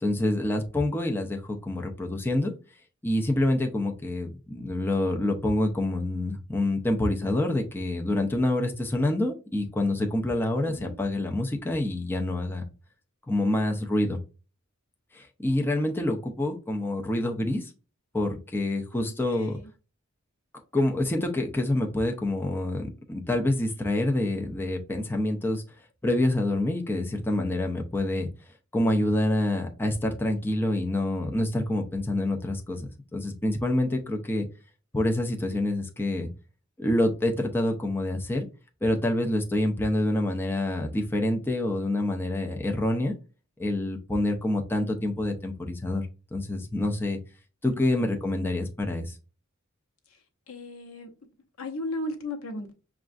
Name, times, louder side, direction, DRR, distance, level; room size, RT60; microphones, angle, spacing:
voice 1, 0.0-2.5 3.0-12.6 13.3-14.2 15.1-17.7 18.1-19.6 20.7-25.6 26.0-28.3 28.7-34.5 34.9-36.3 36.8-38.5 38.8-43.1 43.6-47.2 47.6-49.2, left 1 dB, 10° left, 0.5 m, -27 dB
voice 2, 10.6-11.0 18.9-19.7 47.7-47.8 50.5-51.1 51.6-52.7, left 1 dB, 85° left, 0.8 m, -36 dB
6.0 x 2.3 x 2.5 m
head